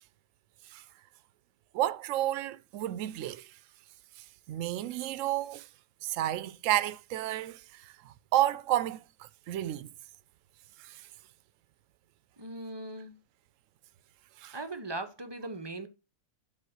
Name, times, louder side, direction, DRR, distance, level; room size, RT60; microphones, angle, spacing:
voice 1, 1.7-3.5 4.5-5.7 6.0-9.0 9.5-9.9 10.8-11.0 14.4-14.6, right 13 dB, 70° right, 0.9 m, -31 dB
voice 2, 12.4-13.2 14.5-15.9, right 2 dB, 25° right, 0.6 m, -39 dB
7.4 x 3.7 x 6.4 m
omnidirectional pair, 1.4 m